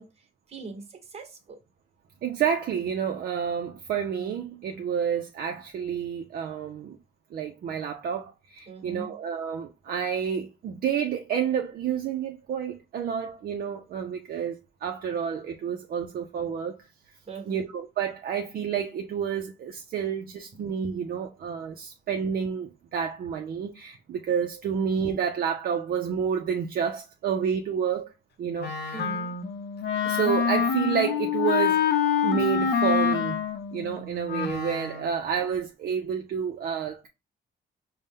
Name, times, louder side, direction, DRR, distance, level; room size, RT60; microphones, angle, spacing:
voice 1, 0.0-1.6 8.7-9.1 17.3-17.6 28.9-29.3, right 3 dB, 35° right, 1.1 m, -41 dB
voice 2, 2.2-7.0 7.3-16.9 17.5-28.1 28.4-29.0 30.0-31.8 32.2-33.4 33.7-37.1, right 7 dB, 55° right, 0.5 m, -29 dB
Wind instrument woodwind instrument, 28.6-35.2, left 7 dB, 65° left, 0.6 m, -26 dB
5.3 x 2.1 x 3.5 m
cardioid pair, 155°, 19 cm